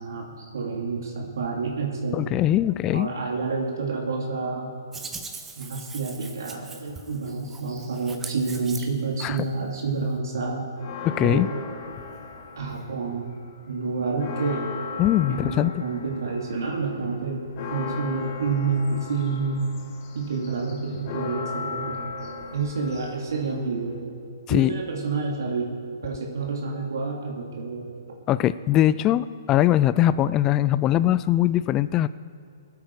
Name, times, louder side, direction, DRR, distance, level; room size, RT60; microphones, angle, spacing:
voice 1, 0.0-2.3 2.9-4.7 5.6-10.6 11.2-11.5 12.6-13.3 13.7-14.7 15.3-19.8 20.1-24.1 24.5-25.7 26.0-27.9, right 4 dB, 70° right, -1 dB, 2.6 m, -29 dB
voice 2, 2.1-3.1 9.2-9.4 11.0-11.5 15.0-15.8 24.5-24.7 28.3-32.1, left 13 dB, 25° left, 16 dB, 0.3 m, -21 dB
Hands, 4.9-9.4, right 4 dB, 10° right, 1.0 m, -40 dB
Church bell, 10.8-13.1 13.5-13.6 13.9-24.0, left 4 dB, 45° left, 1.9 m, -37 dB
20.0 x 8.4 x 4.8 m, 2.5 s
hypercardioid pair, 135°, 2 cm